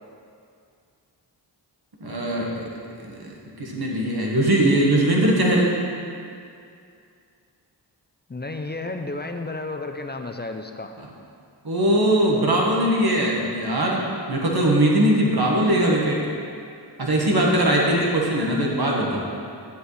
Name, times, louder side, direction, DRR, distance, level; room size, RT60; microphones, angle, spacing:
voice 1, 2.0-2.6 3.0-3.2 3.6-5.7 11.6-14.0 14.3-16.2 17.0-19.2, right 1 dB, 55° right, -2 dB, 1.7 m, -20 dB
voice 2, 8.3-10.9, left 2 dB, 25° left, 5 dB, 0.6 m, -32 dB
10.0 x 7.6 x 3.4 m, 2.4 s
cardioid pair, 40°, 44 cm